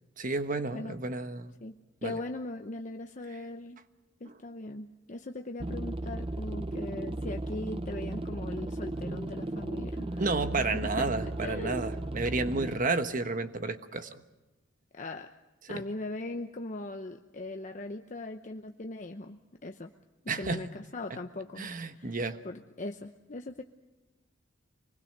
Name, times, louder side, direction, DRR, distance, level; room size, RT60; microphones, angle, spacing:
voice 1, 0.2-1.5 2.0-2.2 4.3-4.4 10.2-14.2 15.7-15.8 20.3-20.6 21.1-21.2 21.6-22.4, right 3 dB, 45° right, 9 dB, 1.2 m, -31 dB
voice 2, 2.0-3.8 4.2-10.3 10.7-11.1 11.4-11.9 14.9-15.4 15.7-19.9 20.4-22.2 22.4-23.6, left 2 dB, 40° left, 5 dB, 0.8 m, -40 dB
sound 1, 5.6-12.8, right 1 dB, 30° right, 0.7 m, -35 dB
25.0 x 20.5 x 6.7 m, 1.1 s
head